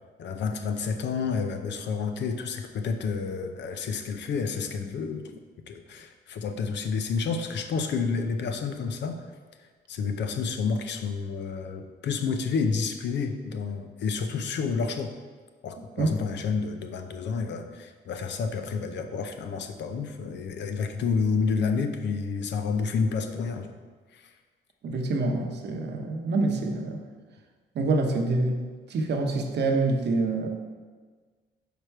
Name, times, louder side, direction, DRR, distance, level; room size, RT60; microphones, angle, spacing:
voice 1, 0.2-5.3 5.7-9.2 9.9-15.1 15.6-23.7 24.1-24.3, left 5 dB, 65° left, 7 dB, 0.6 m, -29 dB
voice 2, 24.8-27.0 27.7-30.5, right 3 dB, 60° right, 3 dB, 0.8 m, -26 dB
5.1 x 4.7 x 4.5 m, 1.5 s
cardioid pair, 90°, 20 cm